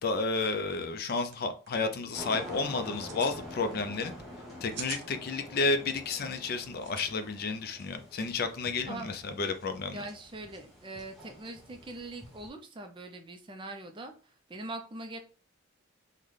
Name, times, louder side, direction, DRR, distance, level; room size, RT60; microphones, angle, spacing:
voice 1, 0.0-4.1 4.6-10.1, left 3 dB, 45° left, 8 dB, 0.4 m, -31 dB
sound 1, 0.9-1.0 1.2-1.4 1.7-2.0 2.8-3.4 4.4-5.1 6.8-7.1, right 6 dB, 60° right, 0.7 m, -42 dB
sound 2, 2.1-12.5, left 1 dB, ahead, 0.9 m, -46 dB
voice 2, 9.9-14.1 14.5-15.2, right 2 dB, 25° right, 6 dB, 0.4 m, -42 dB
3.7 x 2.1 x 3.2 m, 0.37 s
head